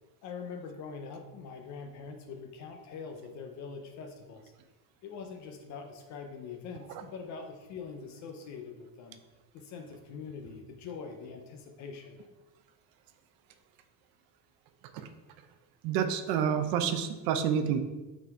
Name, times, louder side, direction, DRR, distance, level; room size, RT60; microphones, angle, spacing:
voice 1, 0.2-4.5 5.0-9.2 9.5-12.3, left 5 dB, 45° left, 4 dB, 0.7 m, -43 dB
voice 2, 15.8-17.8, right 8 dB, 60° right, 8 dB, 0.7 m, -28 dB
5.9 x 4.2 x 4.6 m, 1.2 s
cardioid pair, 175°, 40 cm